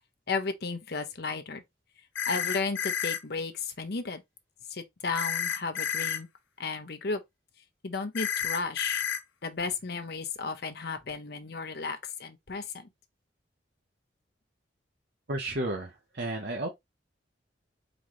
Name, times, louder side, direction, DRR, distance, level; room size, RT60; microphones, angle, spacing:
voice 1, 0.3-1.6 2.3-4.2 4.7-6.3 6.6-7.2 7.8-9.0 9.4-12.9, left 4 dB, 55° left, 0.7 m, -34 dB
sound 1, 2.2-3.2 5.2-6.2 8.2-9.2, left 8 dB, 90° left, 0.7 m, -30 dB
voice 2, 15.3-16.7, right 1 dB, 60° right, 0.9 m, -32 dB
3.9 x 3.8 x 3.1 m
head